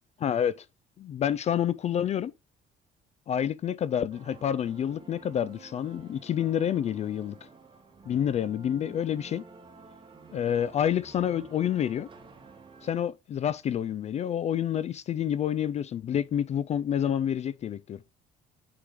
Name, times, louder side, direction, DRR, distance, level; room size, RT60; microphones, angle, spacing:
voice 1, 0.2-0.6 1.0-2.3 3.3-7.4 8.1-9.4 10.3-12.1 12.8-18.0, left 9 dB, 40° left, 0.3 m, -28 dB
sound 1, 4.1-12.9, right 4 dB, 30° right, 2.0 m, -51 dB
6.8 x 6.7 x 3.1 m
cardioid pair, 110°, 17 cm